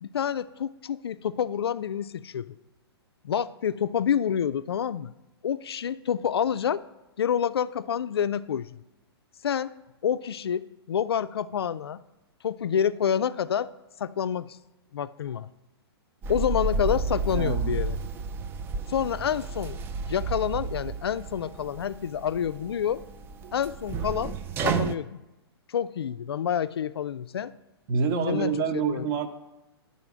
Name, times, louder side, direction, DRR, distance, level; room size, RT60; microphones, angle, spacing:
voice 1, 0.0-2.5 3.2-5.1 5.4-6.8 7.2-8.8 9.4-9.7 10.0-12.0 12.4-13.7 14.0-14.6 14.9-15.5 16.3-18.0 18.9-19.8 20.1-23.0 23.5-24.4 24.6-25.2 25.7-27.5 28.3-29.1, left 8 dB, 70° left, 15 dB, 0.4 m, -28 dB
sound 1, 16.2-25.0, right 4 dB, 15° right, 0.3 m, -32 dB
voice 2, 17.3-17.7 27.9-29.3, right 5 dB, 30° right, 8 dB, 0.8 m, -27 dB
10.5 x 4.1 x 6.0 m, 1.0 s
figure-of-eight pair, 115°, 13 cm